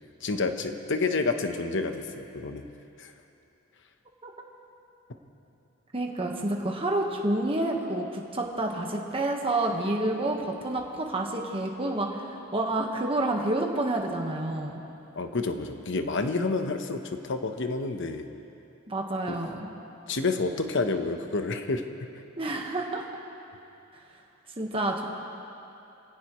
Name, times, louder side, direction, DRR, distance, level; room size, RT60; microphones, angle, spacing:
voice 1, 0.2-2.7 3.0-3.1 15.1-18.3 19.3-19.4 20.1-21.9, left 3 dB, 60° left, 6 dB, 1.0 m, -29 dB
voice 2, 5.9-14.8 18.9-19.7 22.4-23.0 24.6-25.1, right 2 dB, 25° right, 0 dB, 1.4 m, -29 dB
26.0 x 17.0 x 3.2 m, 2.8 s
head